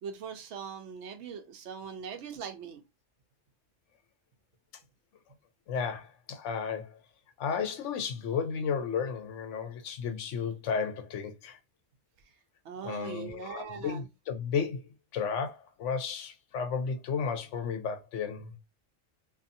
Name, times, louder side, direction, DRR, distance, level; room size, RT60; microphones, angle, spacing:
voice 1, 0.0-2.8 12.6-14.1, right 6 dB, 75° right, 0.9 m, -41 dB
voice 2, 5.7-7.0 7.4-11.6 12.8-14.8 15.1-18.5, left 6 dB, 90° left, 1.0 m, -33 dB
2.7 x 2.6 x 2.5 m
omnidirectional pair, 1.2 m